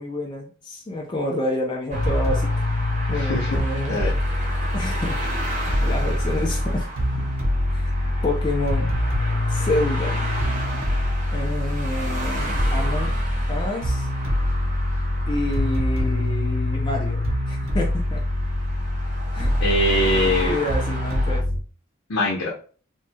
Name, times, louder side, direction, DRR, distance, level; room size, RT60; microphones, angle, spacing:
voice 1, 0.0-2.5 3.1-4.2 4.7-5.2 5.6-6.9 7.7-7.9 8.2-8.9 9.5-10.2 11.3-13.1 13.5-14.1 15.3-18.2 19.3-19.5 20.2-21.4, left 1 dB, 20° left, -1 dB, 0.4 m, -28 dB
sound 1, 1.9-21.4, right 1 dB, 35° right, 0.6 m, -34 dB
sound 2, 1.9-21.6, left 1 dB, 85° right, 0.9 m, -24 dB
voice 2, 3.1-3.5 3.9-4.1 19.6-20.6 22.1-22.5, left 1 dB, 85° left, -3 dB, 0.7 m, -22 dB
3.0 x 2.7 x 2.2 m, 0.40 s
head